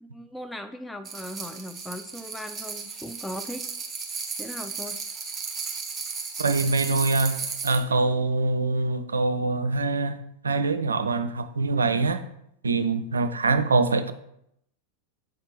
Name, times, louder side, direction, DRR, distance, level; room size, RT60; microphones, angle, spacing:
voice 1, 0.0-3.6 4.4-5.0, left 1 dB, 5° left, 0.3 m, -38 dB
sound 1, 1.0-7.8, right 5 dB, 20° right, 1.1 m, -35 dB
voice 2, 6.4-10.2 10.4-12.2 12.6-14.1, right 3 dB, 75° right, 0.4 m, -24 dB
6.7 x 3.4 x 4.0 m
figure-of-eight pair, 90°, 0 cm